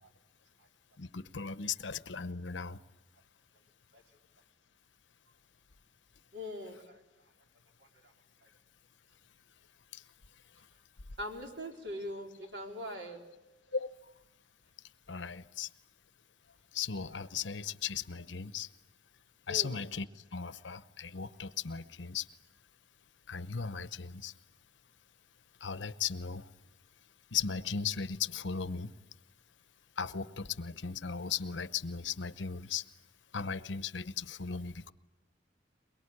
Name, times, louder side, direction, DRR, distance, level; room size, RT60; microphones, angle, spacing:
voice 1, 1.0-2.8 9.9-10.0 13.7-13.9 15.1-15.7 16.7-18.7 19.5-20.1 20.3-22.3 23.3-24.3 25.6-26.5 27.3-28.9 30.0-32.8 33.3-34.9, left 6 dB, 85° left, 14 dB, 0.9 m, -37 dB
voice 2, 6.3-7.0 8.0-8.1 11.2-13.2 19.5-19.7, left 1 dB, 70° right, 2 dB, 4.3 m, -41 dB
23.0 x 22.5 x 9.8 m, 1.0 s
head